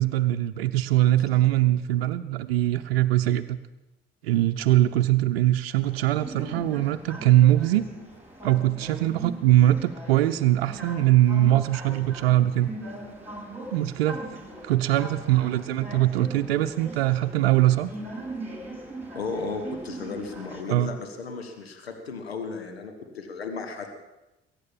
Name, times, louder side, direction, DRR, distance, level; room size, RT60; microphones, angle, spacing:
voice 1, 0.0-3.6 4.2-7.9 8.4-12.7 13.7-14.2 14.6-17.9 20.7-20.9, right 14 dB, 70° right, 8 dB, 0.7 m, -22 dB
sound 1, 5.8-20.6, right 2 dB, 5° right, 6.3 m, -40 dB
voice 2, 19.1-24.0, left 4 dB, 80° left, 5 dB, 1.5 m, -35 dB
21.0 x 9.2 x 7.4 m, 0.97 s
figure-of-eight pair, 50°, 30 cm